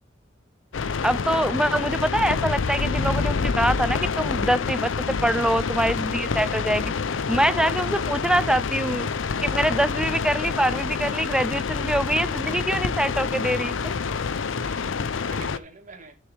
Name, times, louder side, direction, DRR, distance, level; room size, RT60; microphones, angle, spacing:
sound 1, 0.7-15.6, left 5 dB, 90° left, 0.6 m, -27 dB
voice 1, 1.0-4.9 5.2-6.9 7.3-9.1 9.4-13.9, right 1 dB, 5° right, 0.4 m, -24 dB
voice 2, 14.1-16.2, right 3 dB, 40° right, 2.0 m, -46 dB
11.0 x 6.6 x 3.4 m
head